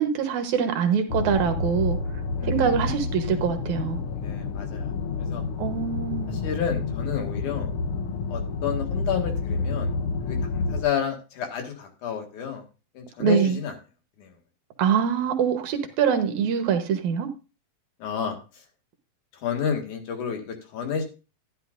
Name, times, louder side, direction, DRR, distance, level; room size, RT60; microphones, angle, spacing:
voice 1, 0.0-2.0 2.4-4.0 5.6-6.4 13.2-13.6 14.8-17.3, right 7 dB, 75° right, 2.5 m, -24 dB
sound 1, 1.1-10.8, left 4 dB, 65° left, 1.5 m, -29 dB
voice 2, 2.4-2.7 4.1-4.9 5.3-5.4 6.3-7.7 8.3-9.9 10.3-12.6 12.9-13.7 14.2-14.3 18.0-18.4 19.4-21.0, left 7 dB, 85° left, 3.3 m, -30 dB
13.5 x 10.0 x 2.5 m
omnidirectional pair, 3.5 m